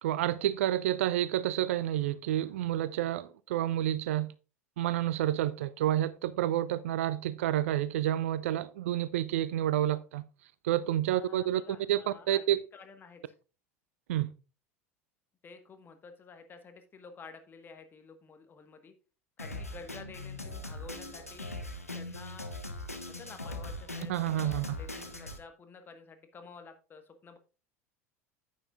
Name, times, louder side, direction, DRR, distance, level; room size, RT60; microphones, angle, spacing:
voice 1, 0.0-4.3 4.8-10.2 10.6-11.6 11.9-12.6 14.1-14.3 24.1-24.8, right 12 dB, 65° right, 0.5 m, -29 dB
voice 2, 11.1-12.4 12.7-13.3 15.4-18.9 19.4-22.5 23.1-27.4, left 5 dB, 25° left, 1.4 m, -51 dB
Drum kit, 19.4-25.4, left 2 dB, 90° left, 1.1 m, -40 dB
9.9 x 9.3 x 2.4 m
figure-of-eight pair, 75°, 8 cm